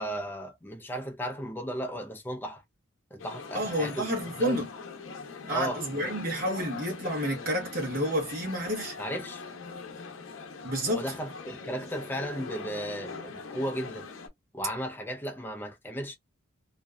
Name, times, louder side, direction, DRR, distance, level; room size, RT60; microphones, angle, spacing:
voice 1, 0.0-2.6 3.1-4.6 5.5-6.1 9.0-9.4 10.9-14.1 14.5-16.2, equal, 10° left, 0.4 m, -35 dB
sound 1, 3.2-14.3, left 4 dB, 85° left, 0.6 m, -42 dB
voice 2, 3.5-4.6 5.5-9.0 10.6-11.0, equal, 45° right, 1.1 m, -30 dB
2.6 x 2.2 x 2.2 m
head